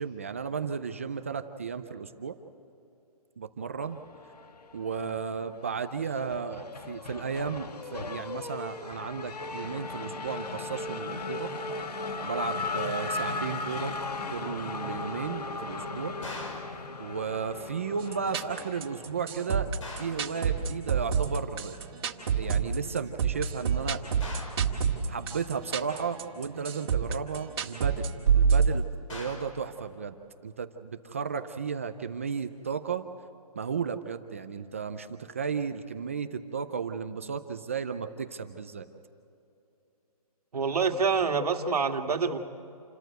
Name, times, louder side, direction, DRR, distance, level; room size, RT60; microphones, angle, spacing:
voice 1, 0.0-2.4 3.4-4.0 4.7-11.5 12.2-14.0 14.3-16.2 17.0-19.7 20.0-21.8 22.0-24.0 25.1-30.1 30.4-33.1 33.5-38.8, right 6 dB, 20° right, 8 dB, 0.5 m, -34 dB
Race car auto racing / Accelerating revving vroom, 4.2-5.2 5.5-19.2, left 3 dB, 85° left, 1.6 m, -37 dB
sound 1, 16.2-16.8 19.8-20.3 24.2-24.7 29.1-29.6, left 2 dB, 55° left, 5.2 m, -41 dB
sound 2, 18.0-28.7, right 7 dB, 40° right, 2.0 m, -28 dB
voice 2, 40.5-42.4, right 5 dB, 75° right, 5 dB, 1.9 m, -26 dB
28.5 x 14.0 x 8.0 m, 2.7 s
hypercardioid pair, 175°, 20 cm